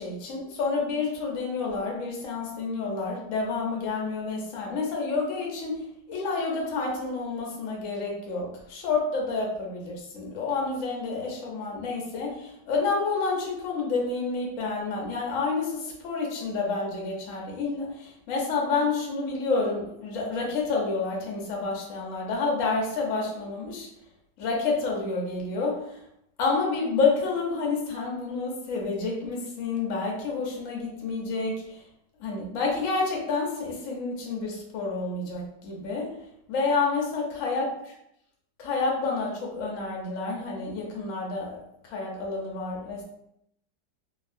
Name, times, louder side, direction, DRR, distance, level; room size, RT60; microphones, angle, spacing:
voice 1, 0.0-5.8 6.1-23.9 24.4-25.8 26.4-31.8 32.2-36.1 36.5-37.7 38.6-41.6 41.8-43.0, left 4 dB, 60° left, -1 dB, 0.9 m, -29 dB
2.8 x 2.7 x 2.5 m, 0.79 s
omnidirectional pair, 1.9 m